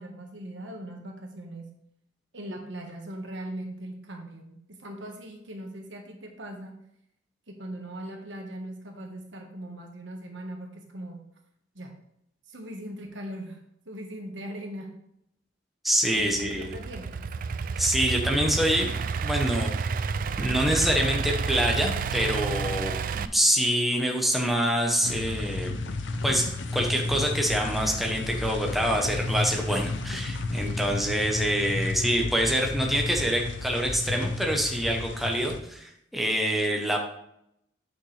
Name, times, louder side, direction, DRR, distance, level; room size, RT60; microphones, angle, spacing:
voice 1, 0.0-1.7 2.3-6.8 7.5-11.2 11.7-11.9 12.5-13.6 13.8-14.9 16.1-17.3, right 1 dB, 80° right, 2 dB, 1.5 m, -40 dB
voice 2, 15.8-16.8 17.8-19.7 20.4-25.8 26.2-37.0, equal, ahead, 1 dB, 0.9 m, -26 dB
Idling / Accelerating revving vroom, 16.1-23.3, right 5 dB, 45° right, 0.3 m, -30 dB
sound 1, 25.0-35.6, left 2 dB, 75° left, 0.7 m, -32 dB
8.5 x 6.3 x 3.3 m, 0.77 s
head